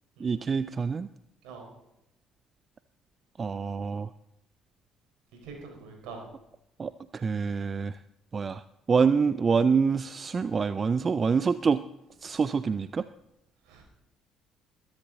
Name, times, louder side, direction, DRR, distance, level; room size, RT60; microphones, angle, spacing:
voice 1, 0.2-1.1 3.4-4.1 6.8-8.0 8.3-11.8 12.2-13.0, right 5 dB, 35° right, 15 dB, 0.4 m, -26 dB
voice 2, 5.4-6.2 13.7-13.8, right 4 dB, 65° right, 2 dB, 4.4 m, -44 dB
21.0 x 10.5 x 3.9 m, 0.88 s
hypercardioid pair, 50°, 0 cm